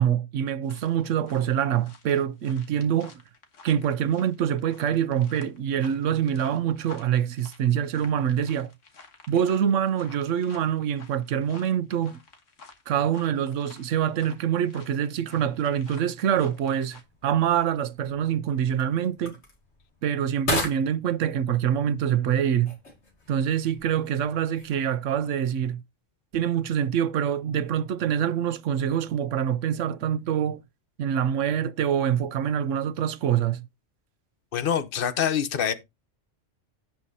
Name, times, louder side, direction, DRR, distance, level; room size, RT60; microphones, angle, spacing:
voice 1, 0.0-3.1 3.6-8.7 9.3-12.2 12.9-19.3 20.0-22.7 23.3-25.8 26.3-30.6 31.0-33.6, right 9 dB, 85° right, 1.0 m, -25 dB
sound 1, 0.6-17.0, left 4 dB, 85° left, 1.9 m, -52 dB
sound 2, 16.1-25.3, left 2 dB, 65° left, 2.6 m, -38 dB
voice 2, 34.5-35.7, left 8 dB, 50° left, 1.1 m, -25 dB
16.5 x 5.7 x 2.8 m
omnidirectional pair, 1.3 m